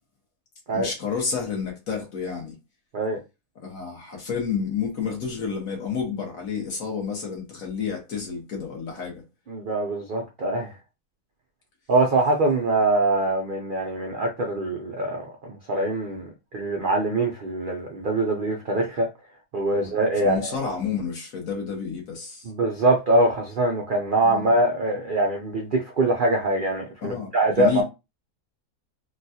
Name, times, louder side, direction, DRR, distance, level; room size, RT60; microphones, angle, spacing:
voice 1, 0.7-2.5 3.6-9.2 16.1-16.2 19.7-20.0 20.2-22.4 24.2-24.4 27.0-27.8, left 6 dB, 60° left, 1.5 m, -30 dB
voice 2, 9.5-10.7 11.9-19.1 19.5-20.5 22.5-27.8, right 2 dB, 65° right, 0.5 m, -23 dB
3.9 x 2.2 x 2.7 m
omnidirectional pair, 1.7 m